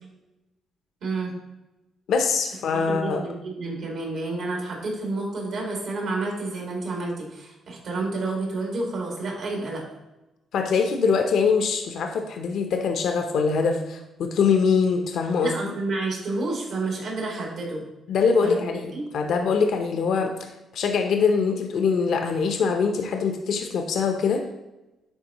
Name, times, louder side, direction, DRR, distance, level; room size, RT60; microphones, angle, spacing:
voice 1, 1.0-1.3 2.7-9.8 15.4-17.8 18.4-18.7 18.9-19.1, right 2 dB, 75° right, -2 dB, 2.3 m, -30 dB
voice 2, 2.1-3.2 10.5-15.7 18.1-20.3 20.7-24.4, left 5 dB, 70° left, 4 dB, 0.6 m, -23 dB
9.9 x 3.7 x 3.0 m, 0.99 s
cardioid pair, 90°, 0 cm